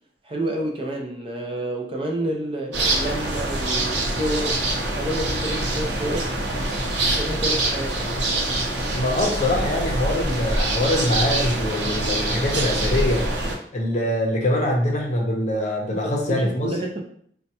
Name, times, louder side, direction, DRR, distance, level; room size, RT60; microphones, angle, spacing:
voice 1, 0.2-4.6 5.0-8.1 15.9-17.0, right 1 dB, 30° right, 0 dB, 0.5 m, -29 dB
sound 1, 2.7-13.6, right 2 dB, 80° right, 0.7 m, -25 dB
voice 2, 8.9-13.3 13.7-16.8, left 1 dB, 40° left, 0 dB, 0.6 m, -23 dB
4.3 x 2.3 x 2.8 m, 0.63 s
head